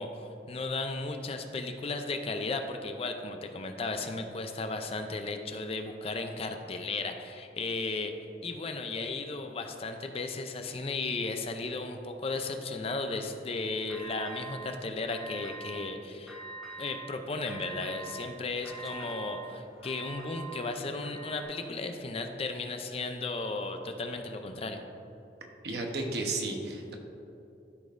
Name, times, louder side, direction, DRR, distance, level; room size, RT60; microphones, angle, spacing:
voice 1, 0.0-8.1 8.4-16.4 16.8-24.8, left 3 dB, 35° left, 6 dB, 0.5 m, -35 dB
sound 1, 13.9-14.8 15.1-15.9 16.3-17.1 17.5-21.4, right 3 dB, ahead, 1.1 m, -44 dB
voice 2, 25.6-26.9, right 2 dB, 65° right, 2 dB, 0.9 m, -33 dB
13.0 x 5.1 x 2.6 m, 2.9 s
head